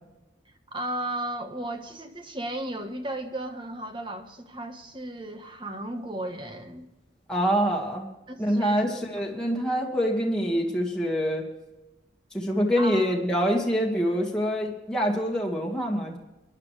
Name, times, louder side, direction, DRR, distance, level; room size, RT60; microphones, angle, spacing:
voice 1, 0.7-6.9 8.3-8.7 12.8-13.2, right 1 dB, 25° right, 6 dB, 1.3 m, -35 dB
voice 2, 7.3-8.1 8.4-11.5 12.3-16.2, equal, 5° left, -3 dB, 1.8 m, -25 dB
23.0 x 11.0 x 3.3 m, 1.0 s
head